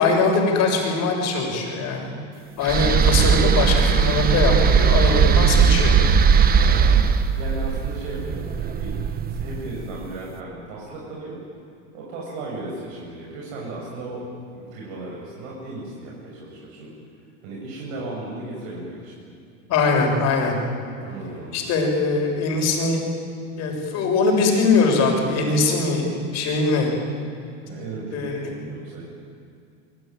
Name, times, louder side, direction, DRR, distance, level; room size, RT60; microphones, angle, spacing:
voice 1, 0.0-2.1 2.6-6.0 19.7-20.6 21.5-23.1 23.6-26.0 26.3-26.9 28.1-28.7, left 3 dB, 45° left, 2 dB, 6.7 m, -21 dB
sound 1, 2.6-9.8, right 7 dB, 25° right, 1.3 m, -18 dB
voice 2, 6.6-7.0 7.3-9.0 9.3-11.4 11.9-14.2 14.5-16.9 17.4-19.1 21.0-21.7 27.6-29.0, right 2 dB, 60° right, -4 dB, 8.0 m, -35 dB
27.5 x 23.0 x 9.4 m, 2.4 s
supercardioid pair, 145°, 37 cm